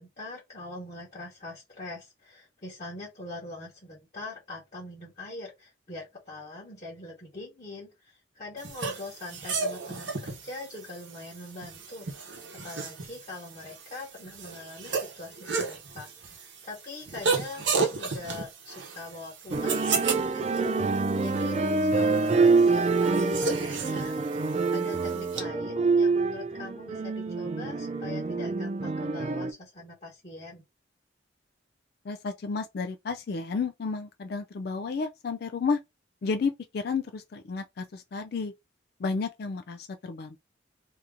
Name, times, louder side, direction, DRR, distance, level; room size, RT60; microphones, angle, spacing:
voice 1, 0.0-30.6, left 2 dB, 35° left, 1.2 m, -43 dB
sound 1, 8.6-25.4, right 4 dB, 70° right, 0.9 m, -34 dB
sound 2, 19.5-29.5, right 4 dB, 35° right, 0.3 m, -26 dB
voice 2, 32.0-35.8 36.2-38.5 39.0-40.4, left 4 dB, 55° left, 0.3 m, -32 dB
2.9 x 2.6 x 3.5 m
head